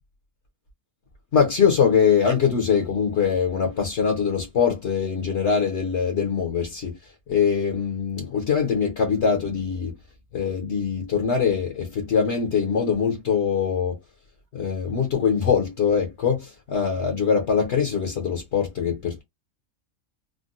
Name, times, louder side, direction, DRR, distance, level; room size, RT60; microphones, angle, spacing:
voice 1, 1.3-7.0 7.3-9.9 10.3-14.0 14.5-19.2, left 6 dB, 55° left, 1.1 m, -23 dB
3.6 x 2.2 x 2.5 m
omnidirectional pair, 1.4 m